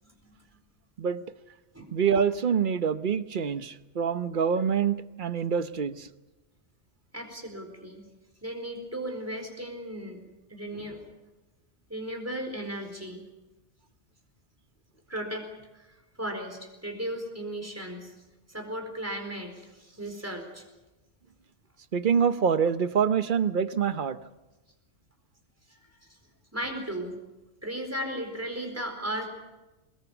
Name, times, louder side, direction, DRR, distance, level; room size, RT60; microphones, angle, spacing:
voice 1, 0.0-0.4 1.7-1.9 7.1-8.0 8.4-10.2 10.5-11.0 11.9-13.2 15.1-15.5 15.7-18.1 18.5-20.6 25.7-25.8 26.1-26.2 26.5-27.1 27.6-29.3, right 1 dB, 15° right, 3 dB, 4.4 m, -36 dB
voice 2, 1.9-6.1 21.9-24.2, right 7 dB, 50° right, 12 dB, 1.0 m, -26 dB
23.0 x 21.0 x 7.2 m, 1.1 s
omnidirectional pair, 1.2 m